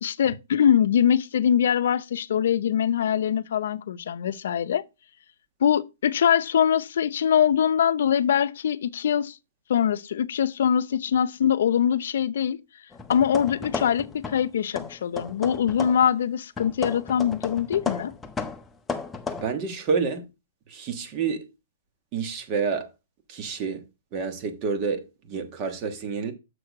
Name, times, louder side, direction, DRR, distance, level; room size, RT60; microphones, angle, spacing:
voice 1, 0.0-4.8 5.6-9.4 9.7-12.6 13.1-18.1, left 9 dB, 70° left, 0.6 m, -23 dB
sound 1, 12.9-14.5 14.7-16.1 16.6-19.4, left 5 dB, 10° left, 0.6 m, -34 dB
voice 2, 19.3-20.3 20.7-21.4 22.1-22.9 23.3-23.9 24.1-26.3, right 5 dB, 30° right, 1.3 m, -28 dB
6.8 x 6.2 x 4.8 m
hypercardioid pair, 165°, 0 cm